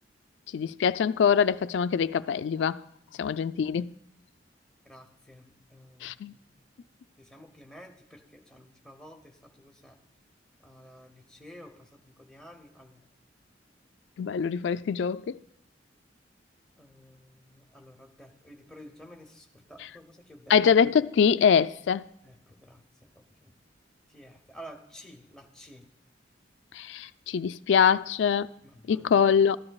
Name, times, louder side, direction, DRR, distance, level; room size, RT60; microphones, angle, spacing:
voice 1, 0.5-2.8 3.2-3.9 6.0-6.3 14.2-15.4 20.5-22.1 26.7-28.5 28.9-29.6, left 7 dB, 80° left, 0.3 m, -24 dB
voice 2, 3.0-3.4 4.8-6.6 7.2-10.0 10.6-13.1 14.2-14.3 16.8-20.6 22.2-22.8 23.1-23.5 24.1-25.8 28.6-29.1, equal, 5° left, 1.0 m, -51 dB
14.0 x 10.5 x 2.3 m
head